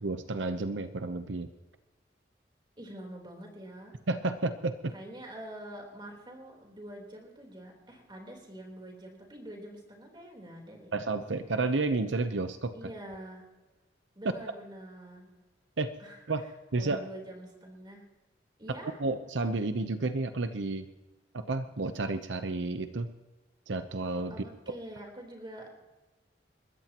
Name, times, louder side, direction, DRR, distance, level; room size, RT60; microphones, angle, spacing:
voice 1, 0.0-1.5 4.1-4.9 10.9-12.9 15.8-15.9 16.3-16.5 16.7-17.0 19.0-20.9 21.3-23.1 23.7-24.3, right 3 dB, 85° right, 9 dB, 0.8 m, -31 dB
voice 2, 2.8-4.0 4.9-10.9 12.7-13.5 14.2-15.3 16.0-16.2 16.8-18.0 18.6-19.0 24.3-25.8, right 1 dB, 25° right, 0 dB, 3.7 m, -45 dB
29.5 x 14.0 x 3.0 m, 1.2 s
head